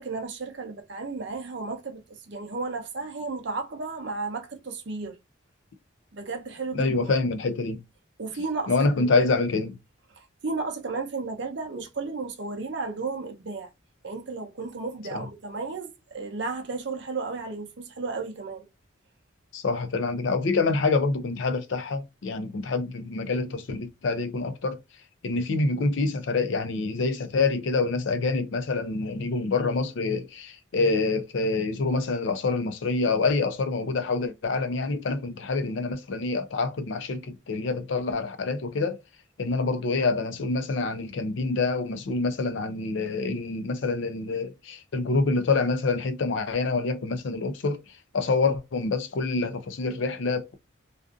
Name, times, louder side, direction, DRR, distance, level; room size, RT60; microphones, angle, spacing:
voice 1, 0.0-5.2 6.1-7.2 8.2-9.3 10.1-13.7 14.0-18.7, right 3 dB, 60° right, 0.6 m, -34 dB
voice 2, 6.7-7.8 8.7-9.8 15.1-15.2 19.5-24.8 25.2-39.0 39.4-47.8 48.1-50.5, left 3 dB, 70° left, 0.4 m, -26 dB
2.5 x 2.4 x 2.3 m
head